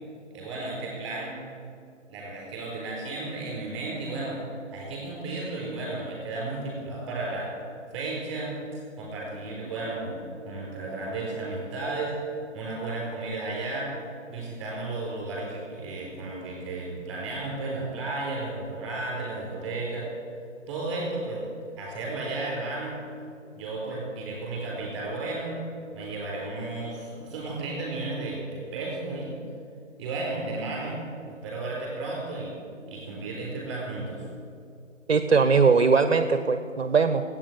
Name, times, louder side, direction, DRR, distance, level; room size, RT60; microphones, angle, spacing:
voice 1, 0.3-1.4 2.1-4.4 4.7-7.5 7.9-8.6 9.0-12.2 12.5-13.9 14.3-20.1 20.7-21.4 21.8-23.0 23.5-25.6 25.9-29.3 30.0-31.0 31.4-32.6 32.9-34.3, right 2 dB, 15° right, -3 dB, 4.0 m, -33 dB
voice 2, 35.1-37.2, right 5 dB, 55° right, 9 dB, 0.8 m, -20 dB
13.5 x 8.7 x 8.8 m, 2.5 s
figure-of-eight pair, 155°, 38 cm